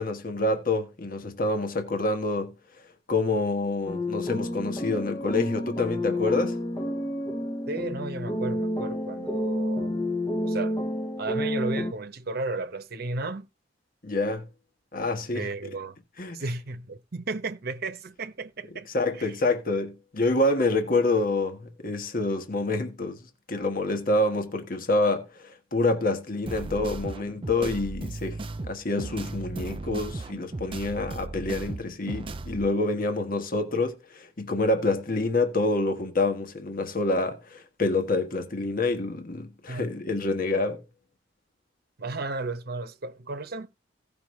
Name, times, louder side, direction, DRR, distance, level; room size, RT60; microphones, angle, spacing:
voice 1, 0.0-2.5 3.1-6.6 14.0-14.5 14.9-15.5 16.2-16.4 18.9-28.4 28.7-40.8, left 2 dB, 50° left, 1.4 m, -27 dB
sound 1, 3.9-11.9, left 1 dB, 20° left, 0.9 m, -30 dB
voice 2, 7.7-10.1 10.4-10.8 11.2-13.5 15.3-16.0 16.3-18.9 19.2-19.4 39.7-39.9 42.0-43.7, right 3 dB, 60° right, 0.9 m, -34 dB
sound 2, 26.5-32.7, right 2 dB, 30° right, 0.5 m, -36 dB
16.5 x 5.5 x 3.2 m
head